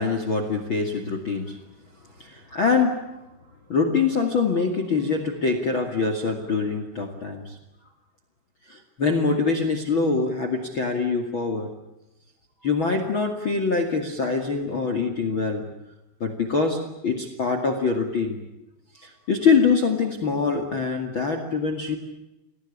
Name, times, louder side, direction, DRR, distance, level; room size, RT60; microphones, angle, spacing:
voice 1, 0.0-1.6 2.2-3.0 3.7-7.6 8.7-11.7 12.6-15.6 16.2-18.4 19.0-22.0, left 4 dB, 40° left, 7 dB, 1.9 m, -24 dB
28.5 x 20.0 x 8.6 m, 0.96 s
omnidirectional pair, 5.6 m